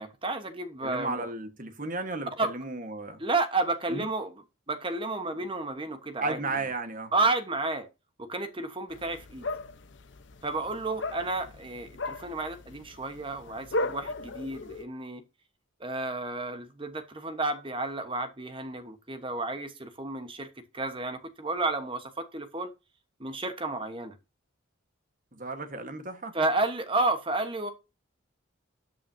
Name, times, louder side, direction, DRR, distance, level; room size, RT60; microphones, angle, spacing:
voice 1, 0.0-1.3 2.4-2.5 3.2-4.3 4.7-6.4 7.1-7.9 8.2-9.5 10.4-15.2 15.8-22.7 23.2-24.1 26.3-27.7, right 2 dB, 25° right, 1.2 m, -31 dB
voice 2, 0.8-3.2 3.9-4.1 6.2-7.1 25.3-26.3, right 3 dB, 40° right, 1.5 m, -34 dB
sound 1, 8.9-14.8, left 2 dB, 60° left, 0.9 m, -37 dB
13.0 x 8.5 x 2.8 m
head